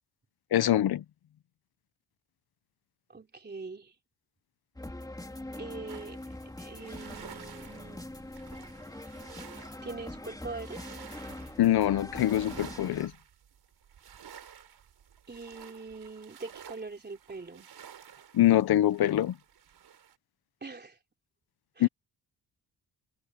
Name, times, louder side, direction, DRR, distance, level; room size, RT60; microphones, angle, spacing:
voice 1, 0.5-1.0 11.6-13.1 18.3-19.4 21.8-21.9, left 13 dB, 70° left, 0.8 m, -24 dB
voice 2, 3.1-4.0 5.5-6.2 6.6-8.0 9.8-11.0 15.3-17.7 20.6-21.0 21.8-21.9, right 3 dB, 25° right, 3.6 m, -42 dB
sound 1, 4.8-13.1, left 1 dB, 10° left, 3.1 m, -43 dB
sound 2, 5.9-20.2, right 9 dB, 70° right, 4.3 m, -51 dB
cardioid pair, 115°, 39 cm